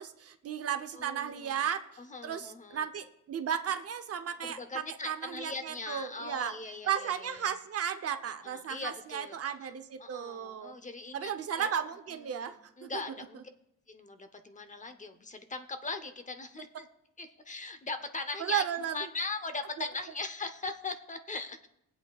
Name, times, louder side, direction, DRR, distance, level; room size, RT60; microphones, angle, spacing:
voice 1, 0.0-1.8 2.2-4.6 5.0-6.5 6.8-10.7 11.1-13.0 18.4-19.1 19.8-19.9, right 9 dB, 50° right, 8 dB, 0.8 m, -34 dB
voice 2, 0.9-1.6 2.0-2.9 4.4-7.5 8.4-9.7 10.0-11.3 11.6-11.7 12.3-13.4 13.9-16.9 17.2-21.7, left 3 dB, 25° left, 9 dB, 0.8 m, -40 dB
18.0 x 8.0 x 2.4 m, 0.82 s
cardioid pair, 90°, 30 cm